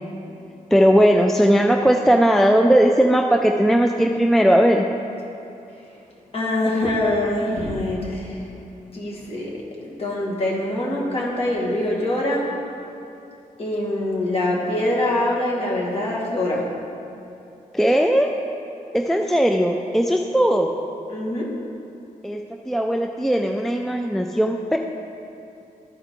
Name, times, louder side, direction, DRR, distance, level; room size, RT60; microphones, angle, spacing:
voice 1, 0.7-4.9 17.7-18.3 18.9-20.7 22.2-22.4 22.7-24.8, equal, ahead, 3 dB, 0.3 m, -18 dB
voice 2, 6.3-8.5 8.9-9.5 9.8-12.5 13.6-16.6 21.1-21.5, left 1 dB, 45° left, -4 dB, 1.9 m, -24 dB
13.0 x 4.7 x 3.7 m, 2.8 s
wide cardioid pair, 105°, 14 cm